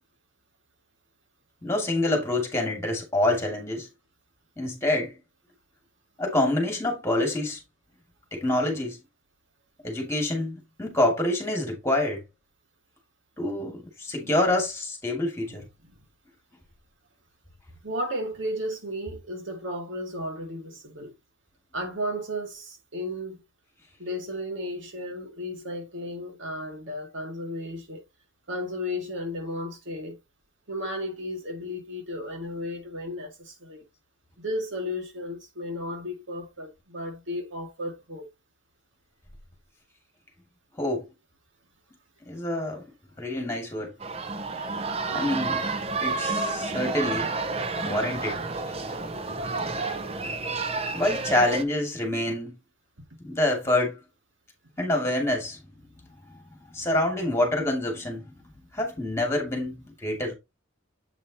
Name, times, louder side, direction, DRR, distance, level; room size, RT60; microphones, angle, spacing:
voice 1, 1.6-3.9 4.6-5.2 6.2-7.6 8.3-9.0 9.8-12.2 13.4-15.6 40.8-41.1 42.3-42.8 43.2-43.9 45.1-45.7 46.0-47.3 47.8-48.4 50.9-52.6 53.2-54.0 54.8-55.6 56.3-56.4 56.7-58.3 58.7-60.3, left 1 dB, 15° left, 2.6 m, -26 dB
voice 2, 15.4-16.0 17.8-21.1 21.7-23.4 24.0-28.0 28.5-30.2 30.7-33.8 34.4-38.3, left 1 dB, 70° right, 2.1 m, -34 dB
sound 1, 44.0-51.6, right 3 dB, 30° right, 0.7 m, -30 dB
8.1 x 5.5 x 2.9 m
head